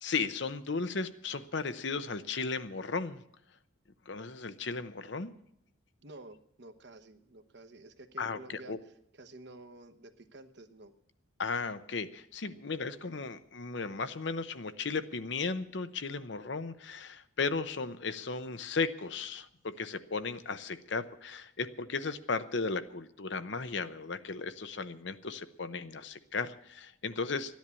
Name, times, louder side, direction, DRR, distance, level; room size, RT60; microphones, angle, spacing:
voice 1, 0.0-3.2 4.1-5.3 8.2-8.8 11.4-27.6, left 4 dB, 60° left, 12 dB, 0.8 m, -35 dB
voice 2, 6.0-8.8 9.2-10.9, right 2 dB, 55° right, 9 dB, 1.0 m, -51 dB
13.5 x 10.5 x 8.3 m, 0.76 s
head